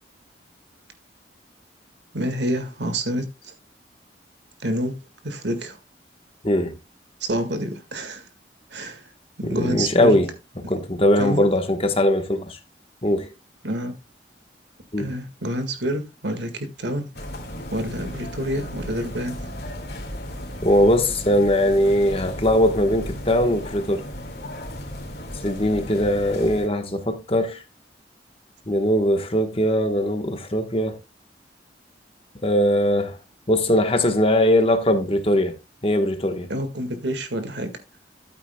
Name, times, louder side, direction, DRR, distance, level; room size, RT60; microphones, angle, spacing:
voice 1, 2.1-3.5 4.6-5.0 5.2-5.8 7.2-8.3 8.7-9.1 9.4-10.2 10.6-10.7 11.2-11.4 13.6-14.0 15.0-17.1 17.7-19.5 36.5-37.7, right 1 dB, 80° right, 1.8 m, -28 dB
voice 2, 6.4-6.8 9.4-10.3 10.7-12.6 13.0-13.3 14.9-15.1 20.6-24.0 25.4-27.6 28.7-31.0 32.4-33.2 33.5-35.5 35.8-36.5, left 1 dB, 30° left, 1.3 m, -20 dB
sound 1, 17.1-26.7, left 1 dB, 65° left, 2.4 m, -35 dB
13.5 x 8.4 x 2.3 m
head